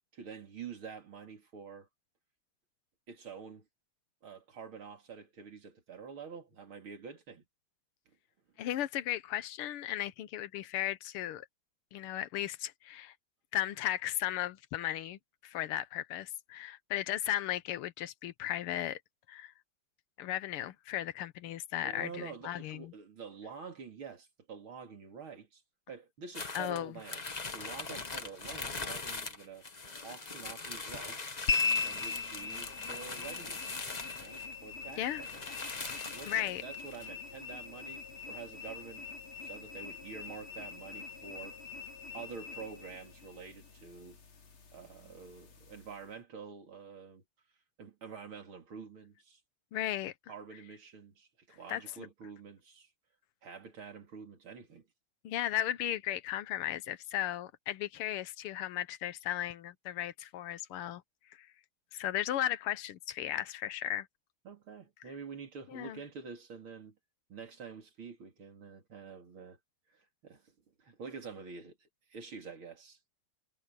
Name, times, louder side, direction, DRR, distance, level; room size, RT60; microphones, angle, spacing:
voice 1, 0.1-1.9 3.1-3.7 4.2-7.4 21.8-25.6 25.9-27.2 27.5-29.7 30.0-31.3 31.8-33.9 34.2-35.4 36.1-41.6 42.1-44.2 44.7-47.2 47.8-49.4 50.3-52.9 53.4-54.9 64.5-67.0 67.3-69.6 69.9-70.5 70.8-73.0, right 5 dB, 70° right, 3.8 m, -47 dB
voice 2, 8.6-11.5 11.9-13.1 13.5-19.0 19.3-19.5 20.2-22.9 26.5-26.9 35.0-35.2 36.3-36.6 49.7-50.1 51.7-51.8 55.2-61.0 61.3-61.5 61.9-64.1 65.7-66.0, left 12 dB, 90° left, 1.8 m, -35 dB
sound 1, 26.3-34.5 34.9-35.0 35.2-37.1, left 3 dB, 25° left, 1.1 m, -41 dB
sound 2, 31.5-46.1, left 5 dB, 75° left, 3.4 m, -40 dB
omnidirectional pair, 2.4 m